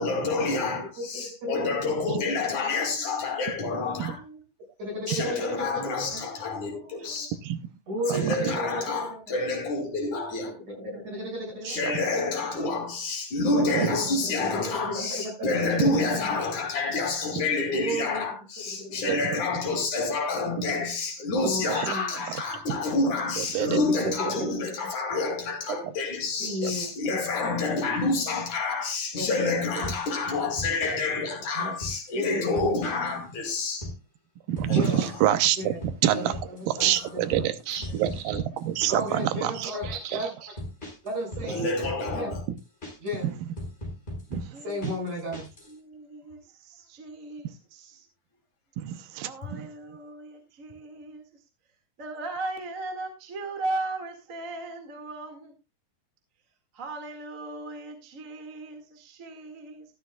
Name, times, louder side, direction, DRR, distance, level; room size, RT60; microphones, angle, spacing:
voice 1, 0.0-4.2 5.1-7.4 8.1-10.6 11.7-33.9 34.7-35.1 36.8-36.9 41.5-42.4, left 3 dB, 60° left, 3.7 m, -28 dB
voice 2, 1.0-1.7 2.5-2.8 4.8-6.2 7.9-8.8 9.1-9.3 10.8-11.7 13.9-16.4 17.7-18.2 18.7-19.3 21.4-22.1 24.0-24.7 26.4-27.2 29.1-29.6 31.5-31.7 32.1-32.7 33.0-33.1 34.7-35.0 35.6-35.8 36.1-37.5 38.9-39.8 40.1-40.3 41.0-41.6 42.0-42.3 43.0-43.4 44.6-45.5, left 1 dB, 55° right, 7.6 m, -34 dB
voice 3, 2.8-3.4 3.9-4.4 6.0-7.3 8.6-9.0 9.4-10.1 11.6-12.0 12.2-12.8 37.6-37.8 38.1-38.4 38.9-40.6 44.4-45.1 45.7-48.1 49.2-51.2 52.0-55.5 56.7-59.8, right 3 dB, 30° right, 1.8 m, -39 dB
voice 4, 8.1-8.6 11.6-11.9 13.5-14.0 17.4-17.5 19.1-19.2 19.5-19.6 20.6-20.7 21.4-22.4 22.7-22.8 23.4-24.5 26.6-26.7 30.9-31.0 34.5-36.4 36.7-37.6 37.9-39.6 41.6-41.7 43.2-43.3 44.3-44.6 44.8-44.9 48.8-49.7, right 12 dB, 90° right, 2.6 m, -28 dB
sound 1, 29.8-30.2 30.6-31.0 31.6-32.2 32.5-33.2 33.4-34.0 34.6-35.2 35.4-39.2 39.6-40.0 40.6-43.2 43.6-45.7, left 1 dB, 15° left, 5.1 m, -38 dB
13.5 x 13.0 x 2.3 m
omnidirectional pair, 4.0 m